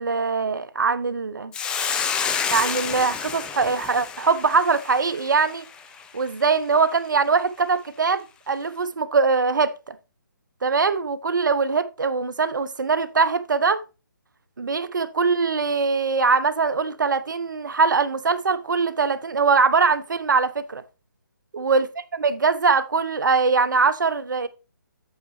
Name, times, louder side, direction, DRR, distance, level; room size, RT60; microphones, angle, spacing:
voice 1, 0.0-1.5 2.5-5.6 6.1-10.0 10.6-13.8 14.6-20.8 21.5-21.9 22.1-24.5, right 4 dB, 70° right, 1.0 m, -22 dB
Hiss, 1.5-6.0, left 7 dB, 10° left, 0.5 m, -29 dB
8.6 x 7.4 x 3.2 m
figure-of-eight pair, 150°, 11 cm